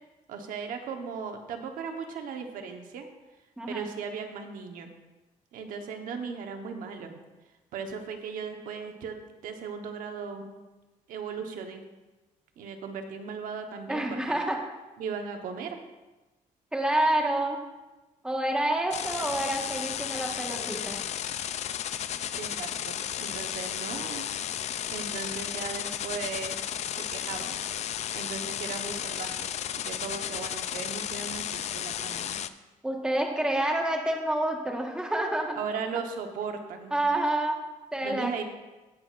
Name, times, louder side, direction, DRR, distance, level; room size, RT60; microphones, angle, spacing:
voice 1, 0.3-3.1 3.7-4.9 5.5-7.2 7.7-9.2 9.4-10.6 11.1-11.8 12.6-14.4 15.0-15.8 22.3-24.3 24.9-26.6 26.9-27.6 28.1-29.5 29.8-32.4 35.6-37.0 38.0-38.4, right 5 dB, 85° right, 4 dB, 1.1 m, -37 dB
voice 2, 3.6-3.9 13.9-14.6 16.7-17.6 18.2-21.0 32.8-35.6 36.9-37.6 37.9-38.4, right 1 dB, 5° right, 1 dB, 1.4 m, -28 dB
sound 1, 18.9-32.5, left 10 dB, 55° left, 0.4 m, -34 dB
17.5 x 6.3 x 2.5 m, 1.1 s
cardioid pair, 125°, 14 cm